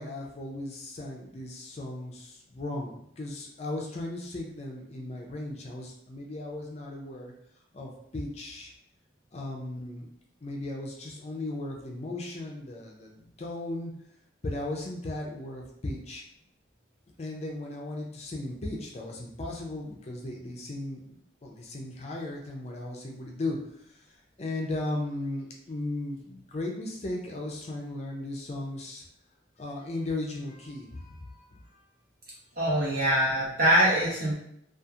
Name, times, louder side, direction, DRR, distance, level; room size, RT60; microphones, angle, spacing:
voice 1, 0.0-7.3 7.7-8.7 9.3-10.1 10.4-13.9 14.4-16.2 17.2-24.1 24.4-29.0 29.6-31.5 31.7-31.8 32.6-33.0, left 2 dB, 35° left, -1 dB, 0.4 m, -36 dB
voice 2, 32.6-34.3, equal, 50° right, -7 dB, 1.1 m, -23 dB
2.8 x 2.4 x 2.4 m, 0.73 s
head